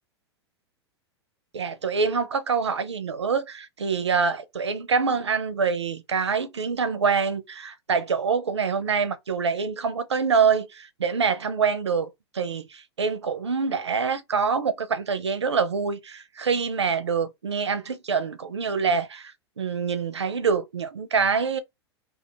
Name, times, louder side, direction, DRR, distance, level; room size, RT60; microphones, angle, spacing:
voice 1, 1.5-21.6, right 5 dB, 80° right, 0.4 m, -25 dB
2.4 x 2.2 x 2.6 m
figure-of-eight pair, 95°, 14 cm